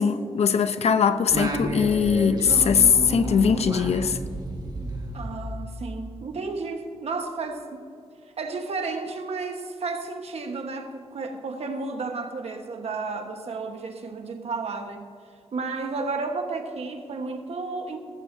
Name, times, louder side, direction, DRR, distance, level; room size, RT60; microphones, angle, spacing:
voice 1, 0.0-4.2, left 6 dB, 80° left, 0.7 m, -21 dB
Singing, 1.3-6.1, right 1 dB, 40° right, 1.7 m, -31 dB
voice 2, 5.1-7.9 8.4-15.1 15.5-18.0, right 3 dB, 75° right, 1.3 m, -32 dB
17.5 x 15.0 x 2.7 m
wide cardioid pair, 130°, 11 cm